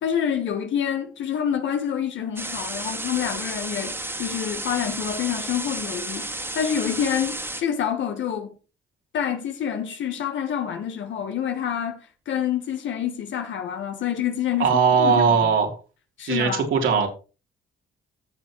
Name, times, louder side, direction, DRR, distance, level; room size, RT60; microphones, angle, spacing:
voice 1, 0.0-8.5 9.1-12.0 12.3-15.5 16.2-16.6, left 9 dB, 70° left, 1.4 m, -27 dB
sound 1, 2.4-7.6, right 1 dB, 10° right, 2.0 m, -32 dB
voice 2, 14.6-15.8 16.2-17.1, right 5 dB, 80° right, 3.5 m, -19 dB
15.0 x 7.1 x 3.1 m
cardioid pair, 90°, 20 cm